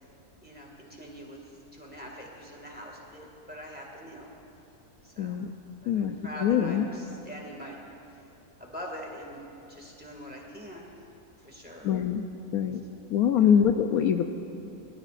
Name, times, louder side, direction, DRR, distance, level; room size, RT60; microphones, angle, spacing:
voice 1, 0.4-1.4 1.7-4.3 5.0-5.4 5.8-7.8 8.6-10.9 11.4-11.9 13.4-13.5, equal, 5° right, -2 dB, 1.9 m, -43 dB
voice 2, 5.2-5.5 5.9-6.2 6.4-6.8 11.8-12.2 12.5-12.8 13.1-14.3, left 8 dB, 75° left, 6 dB, 1.0 m, -23 dB
21.5 x 18.0 x 2.5 m, 2.9 s
omnidirectional pair, 1.7 m